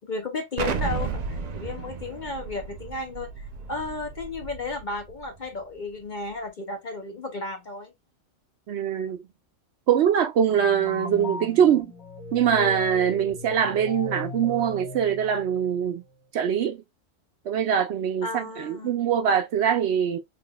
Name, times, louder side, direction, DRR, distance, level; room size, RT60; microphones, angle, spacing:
voice 1, 0.0-7.9 18.2-18.9, left 3 dB, 50° left, 0.6 m, -34 dB
Explosion, 0.6-5.3, right 5 dB, 85° right, 0.3 m, -33 dB
voice 2, 8.7-9.2 9.9-11.9 12.3-16.0 16.3-16.8 17.5-20.2, right 8 dB, 65° right, 0.7 m, -23 dB
sound 1, 10.4-15.9, left 1 dB, 15° left, 1.4 m, -37 dB
3.8 x 3.3 x 2.2 m
omnidirectional pair, 1.3 m